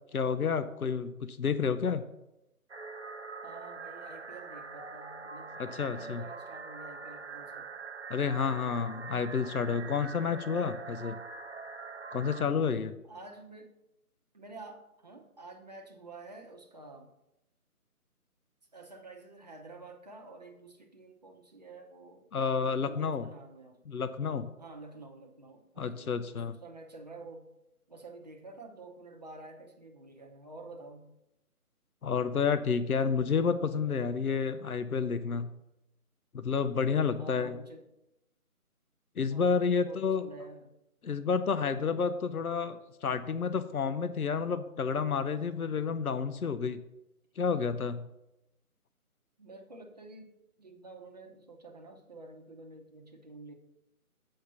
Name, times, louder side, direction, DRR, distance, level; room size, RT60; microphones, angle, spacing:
voice 1, 0.1-2.0 5.6-6.2 8.1-11.2 12.1-13.0 22.3-23.3 23.9-24.5 25.8-26.6 32.0-35.5 36.3-37.5 39.2-40.2 41.0-46.8 47.4-48.1, left 6 dB, 75° left, 12 dB, 0.7 m, -30 dB
sound 1, 2.7-12.4, right 4 dB, 50° right, 0.5 m, -44 dB
voice 2, 3.4-7.7 13.0-13.7 14.3-17.1 18.7-22.3 22.6-27.5 27.9-31.2 37.2-37.9 39.3-40.7 49.4-50.3 50.6-53.5, right 2 dB, 30° right, 2 dB, 0.9 m, -49 dB
7.8 x 5.1 x 6.9 m, 0.89 s
figure-of-eight pair, 155°, 45 cm